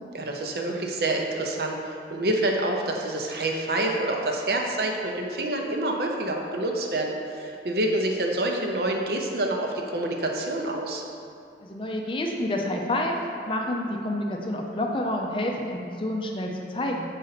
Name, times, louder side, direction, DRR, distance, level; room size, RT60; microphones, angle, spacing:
voice 1, 0.1-11.0, right 1 dB, 55° right, 1 dB, 0.6 m, -27 dB
voice 2, 11.6-13.1 13.5-17.1, left 1 dB, 30° left, 1 dB, 0.5 m, -28 dB
6.4 x 4.1 x 4.0 m, 2.4 s
head